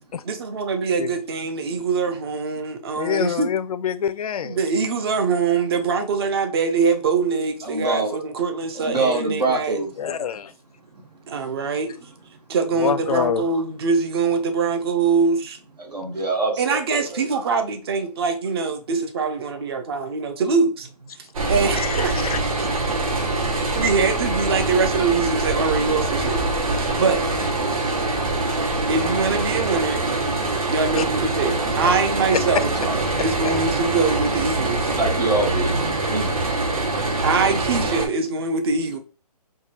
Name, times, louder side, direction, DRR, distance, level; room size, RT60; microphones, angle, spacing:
voice 1, 0.3-3.5 4.4-9.8 11.3-11.9 12.5-15.6 16.6-20.9 21.5-22.1 23.6-27.3 28.9-30.1 30.7-32.7 33.2-34.9 37.2-39.0, right 4 dB, 40° right, 0.5 m, -23 dB
voice 2, 3.0-4.6 10.0-10.5 12.8-13.4 21.8-22.4 31.0-31.1, left 8 dB, 65° left, 0.4 m, -26 dB
voice 3, 7.6-8.2 8.8-9.9 15.8-17.2 26.8-27.0 31.8-32.0 32.8-33.0 34.8-36.4, right 2 dB, 90° right, 1.5 m, -25 dB
sound 1, 21.3-38.1, right 2 dB, 60° right, 1.2 m, -24 dB
4.6 x 2.3 x 2.9 m
hypercardioid pair, 155°, 21 cm